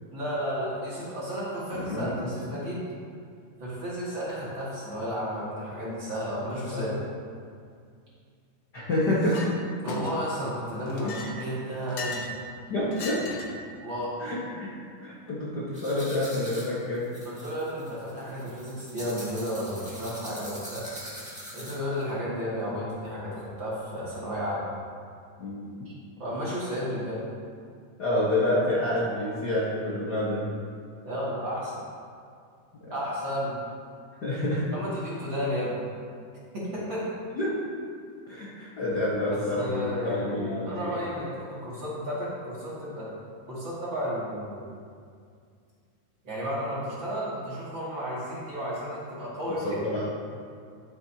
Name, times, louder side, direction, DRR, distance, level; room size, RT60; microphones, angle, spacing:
voice 1, 0.1-2.9 3.6-6.9 9.8-12.2 13.8-14.1 17.2-20.9 21.5-24.6 26.2-27.2 31.0-31.8 32.9-33.5 34.7-35.8 36.5-37.1 39.3-43.1 43.5-44.7 46.2-49.8, equal, 35° right, -9 dB, 2.6 m, -33 dB
voice 2, 1.7-2.7 6.7-6.9 8.7-9.4 11.0-11.1 12.7-13.3 14.2-14.7 15.0-17.1 25.4-25.7 28.0-30.5 34.2-34.7 37.4-37.5 38.3-41.0 49.6-50.0, left 1 dB, 50° left, -7 dB, 1.2 m, -28 dB
Chink clink, 9.2-9.5 9.9-10.4 10.9-12.4 12.9-13.6, left 2 dB, 70° left, 1.3 m, -36 dB
sound 1, 15.7-22.0, equal, 5° right, 1.0 m, -43 dB
11.0 x 10.5 x 2.9 m, 2.2 s
omnidirectional pair, 4.1 m